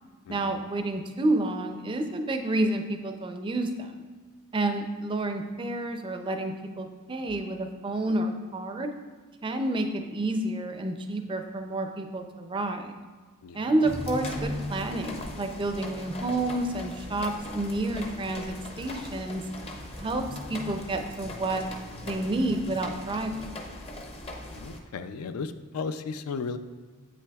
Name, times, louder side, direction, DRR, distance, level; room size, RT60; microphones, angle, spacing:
voice 1, 0.3-3.9 4.5-8.9 9.4-13.0 13.5-19.4 19.9-21.6 22.0-23.6, right 2 dB, 25° right, 6 dB, 0.4 m, -29 dB
sound 1, 13.8-24.8, left 1 dB, 25° left, 0.5 m, -39 dB
voice 2, 24.5-26.6, left 5 dB, 80° left, 11 dB, 0.4 m, -34 dB
7.9 x 5.9 x 2.3 m, 1.4 s
head